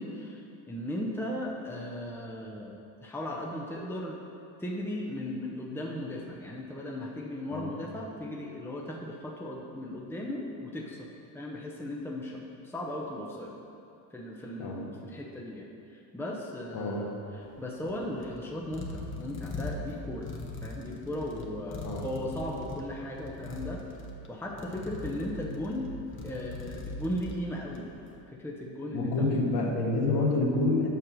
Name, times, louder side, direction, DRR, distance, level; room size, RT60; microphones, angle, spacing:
voice 1, 0.0-4.2 4.6-11.1 11.3-13.5 14.1-20.3 20.6-23.8 24.3-25.9 26.2-27.9 28.3-29.4, left 1 dB, 5° left, -2 dB, 0.9 m, -37 dB
voice 2, 16.7-17.1 21.8-22.0 28.9-30.9, left 2 dB, 55° left, -2 dB, 2.0 m, -27 dB
sound 1, 17.4-28.0, left 2 dB, 25° left, 1.1 m, -41 dB
8.1 x 5.8 x 6.3 m, 2.8 s
supercardioid pair, 95°, 47 cm